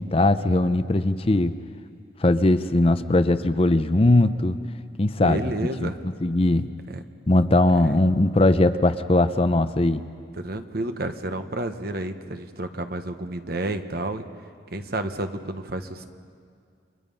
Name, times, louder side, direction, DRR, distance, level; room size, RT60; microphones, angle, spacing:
voice 1, 0.0-1.6 2.2-4.6 5.0-5.4 5.8-5.9 6.2-6.7 7.3-10.0, left 2 dB, 30° left, 10 dB, 0.6 m, -20 dB
voice 2, 5.2-6.0 6.9-7.0 7.8-8.0 10.4-14.2 14.7-16.1, right 1 dB, 55° right, 8 dB, 1.1 m, -30 dB
30.0 x 23.5 x 5.5 m, 2.2 s
head